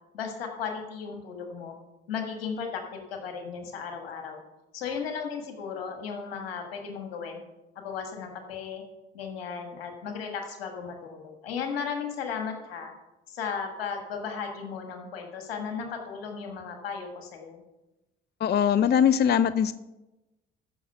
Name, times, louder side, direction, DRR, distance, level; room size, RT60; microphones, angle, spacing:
voice 1, 0.1-1.8 2.1-4.4 4.7-7.4 7.8-8.8 9.1-12.9 13.3-17.6, left 6 dB, 85° left, 4 dB, 1.6 m, -35 dB
voice 2, 18.4-19.7, left 8 dB, 35° left, 15 dB, 0.5 m, -21 dB
14.0 x 6.2 x 5.5 m, 1.0 s
hypercardioid pair, 50°, 29 cm